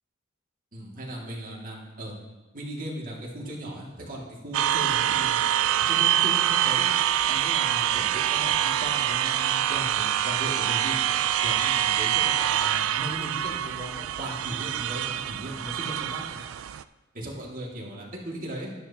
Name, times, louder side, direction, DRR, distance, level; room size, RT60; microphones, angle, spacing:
voice 1, 0.7-2.1 2.5-5.5 5.8-6.9 7.3-11.0 11.4-16.5 17.1-18.7, right 1 dB, 45° right, -3 dB, 2.2 m, -37 dB
sound 1, 4.5-16.8, right 11 dB, 75° right, 0.3 m, -25 dB
12.5 x 10.5 x 2.9 m, 1.2 s
head